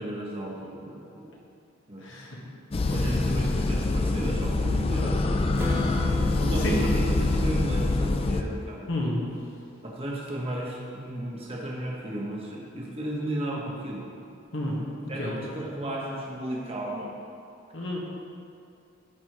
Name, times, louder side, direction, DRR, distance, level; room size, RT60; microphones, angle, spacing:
voice 1, 0.0-1.3 1.9-2.1 2.9-5.3 6.4-8.8 9.8-14.0 15.1-17.2, right 1 dB, 30° right, -3 dB, 1.3 m, -34 dB
voice 2, 2.0-2.4 5.9-6.2 6.6-7.3 8.9-9.3 14.5-14.8 15.2-15.3 17.7-18.0, left 1 dB, 70° left, -3 dB, 1.5 m, -30 dB
sound 1, 2.7-8.4, left 2 dB, 30° left, 0.4 m, -25 dB
Strum, 5.5-9.5, left 2 dB, 10° right, 0.8 m, -38 dB
13.5 x 5.3 x 3.1 m, 2.5 s
head